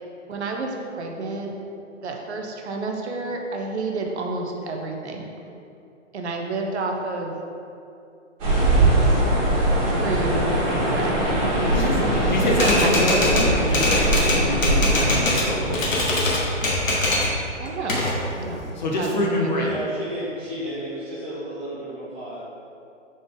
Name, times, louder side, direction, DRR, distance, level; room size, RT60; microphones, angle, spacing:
voice 1, 0.3-1.5 2.0-5.3 6.1-7.3 9.0-9.3 10.0-10.4 10.7-11.3 12.5-13.3 17.6-18.0 18.3-18.6 18.9-19.8, right 3 dB, 60° right, 1 dB, 0.7 m, -30 dB
sound 1, 8.4-16.5, right 1 dB, 25° right, 1.5 m, -22 dB
voice 2, 11.6-16.0 18.8-19.8, left 1 dB, 35° left, -2 dB, 0.5 m, -26 dB
Typewriter, 12.5-15.5 15.7-17.3 17.7-18.7, left 2 dB, 90° left, 1.2 m, -23 dB
voice 3, 19.6-22.4, equal, 10° right, -11 dB, 0.5 m, -33 dB
3.8 x 3.7 x 3.6 m, 2.6 s
hypercardioid pair, 160°, 38 cm